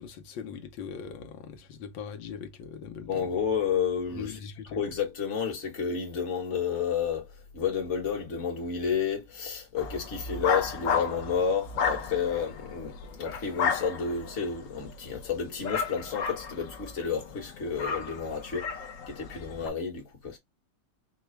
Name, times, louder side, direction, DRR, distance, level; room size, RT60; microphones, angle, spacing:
voice 1, 0.0-3.4 4.1-5.0, left 7 dB, 85° left, 1.5 m, -41 dB
voice 2, 3.0-4.3 4.7-18.8 19.1-20.4, left 6 dB, 40° left, 1.5 m, -31 dB
sound 1, 9.8-19.7, left 6 dB, 60° left, 0.9 m, -33 dB
4.8 x 2.3 x 3.1 m
omnidirectional pair, 2.0 m